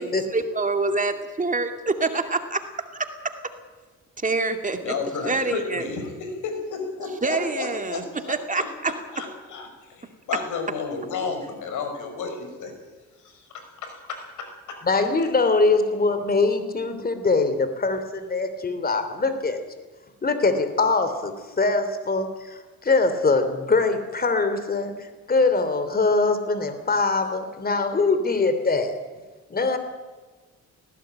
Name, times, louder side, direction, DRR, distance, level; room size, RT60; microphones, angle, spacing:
voice 1, 0.0-2.6 3.0-3.1 4.2-4.8 5.2-5.8 7.2-8.9, right 3 dB, 25° right, 6 dB, 2.4 m, -26 dB
voice 2, 4.8-12.7 13.2-14.8, left 4 dB, 80° left, 6 dB, 5.5 m, -33 dB
voice 3, 14.8-19.6 20.2-28.9 29.5-29.8, left 3 dB, 30° left, 9 dB, 3.0 m, -23 dB
19.0 x 17.0 x 8.9 m, 1.3 s
cardioid pair, 90°, 30 cm